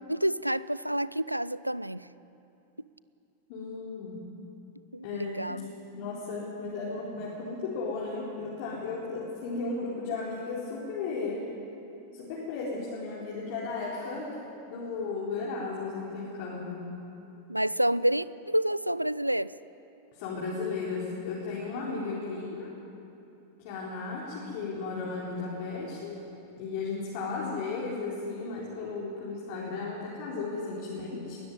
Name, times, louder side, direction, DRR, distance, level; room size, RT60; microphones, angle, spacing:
voice 1, 0.1-2.0 4.9-5.7 17.5-19.5 21.8-22.4, right 1 dB, 90° right, 19 dB, 0.4 m, -29 dB
voice 2, 3.5-4.2 5.0-5.6 5.9-11.5 12.1-14.4 14.7-16.8 20.1-22.7 23.6-26.2 26.6-31.4, left 4 dB, 50° left, -4 dB, 3.9 m, -35 dB
20.5 x 13.5 x 9.9 m, 2.8 s
figure-of-eight pair, 90°, 0 cm